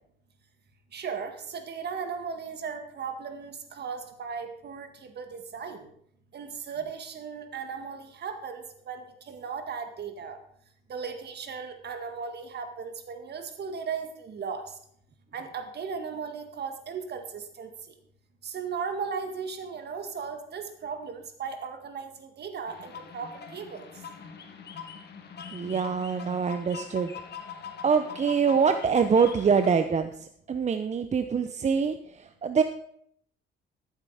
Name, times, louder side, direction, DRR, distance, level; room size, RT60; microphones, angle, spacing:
voice 1, 0.9-5.9 6.3-10.4 10.9-14.6 15.3-17.7 18.4-23.9, right 6 dB, 55° right, 6 dB, 1.9 m, -36 dB
sound 1, 22.7-29.7, left 6 dB, 55° left, 1.7 m, -43 dB
voice 2, 25.5-27.1 27.8-32.6, right 6 dB, 35° right, 8 dB, 0.7 m, -25 dB
13.5 x 7.5 x 5.0 m, 0.69 s
cardioid pair, 90°, 20 cm